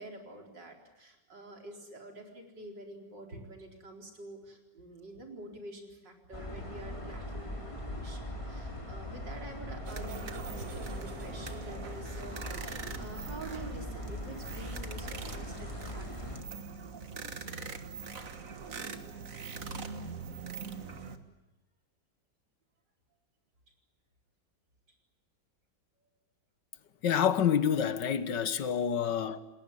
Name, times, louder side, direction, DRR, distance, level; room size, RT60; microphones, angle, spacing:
voice 1, 0.0-16.4 17.3-17.5, right 2 dB, 80° right, 5.0 m, -47 dB
sound 1, 6.3-16.4, left 1 dB, 15° left, 3.7 m, -41 dB
sound 2, 9.8-21.2, right 5 dB, 50° right, 2.0 m, -43 dB
voice 2, 27.0-29.4, left 8 dB, 80° left, 1.9 m, -28 dB
28.5 x 20.0 x 9.9 m
omnidirectional pair, 1.9 m